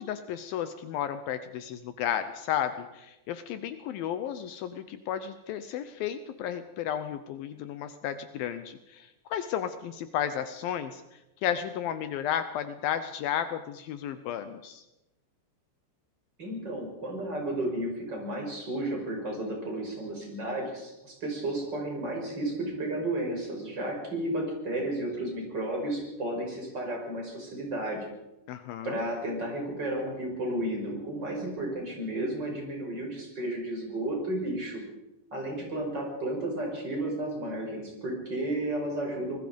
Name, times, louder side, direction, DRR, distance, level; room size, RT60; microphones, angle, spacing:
voice 1, 0.0-11.0 11.4-14.8 28.5-29.0, left 9 dB, 90° left, 11 dB, 2.0 m, -33 dB
voice 2, 16.4-28.1 28.8-34.8 35.3-39.4, right 1 dB, 20° right, 1 dB, 5.9 m, -33 dB
25.0 x 20.5 x 5.3 m, 0.96 s
omnidirectional pair, 5.4 m